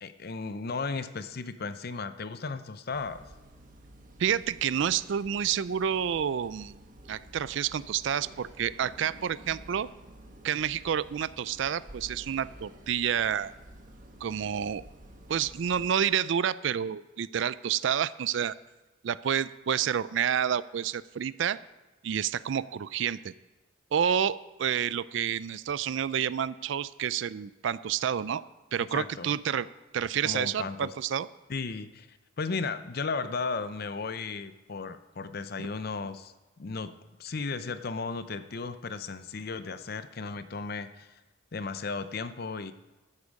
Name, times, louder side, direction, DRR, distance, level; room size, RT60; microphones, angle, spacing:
voice 1, 0.0-3.3 28.9-29.3 30.2-30.9 31.5-36.9 37.2-41.1 41.5-42.7, left 4 dB, 45° left, 12 dB, 0.6 m, -35 dB
sound 1, 2.9-15.9, right 1 dB, 40° right, 1.6 m, -51 dB
voice 2, 4.2-6.8 7.1-9.9 10.4-13.5 14.2-14.8 15.3-18.5 19.0-21.6 22.0-23.3 23.9-28.4 28.7-29.7 29.9-31.3, right 8 dB, 60° right, 18 dB, 0.3 m, -29 dB
13.5 x 8.2 x 5.3 m, 1.1 s
head